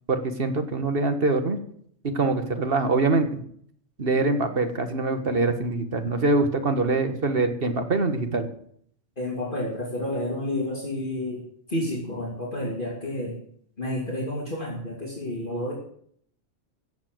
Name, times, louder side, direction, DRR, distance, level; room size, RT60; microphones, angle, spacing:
voice 1, 0.1-1.6 2.0-3.4 4.0-8.5, right 3 dB, 50° right, 7 dB, 1.6 m, -24 dB
voice 2, 9.2-11.4 11.7-13.4 13.8-15.7, left 1 dB, 40° left, -3 dB, 2.9 m, -30 dB
15.0 x 7.2 x 7.8 m, 0.65 s
omnidirectional pair, 1.3 m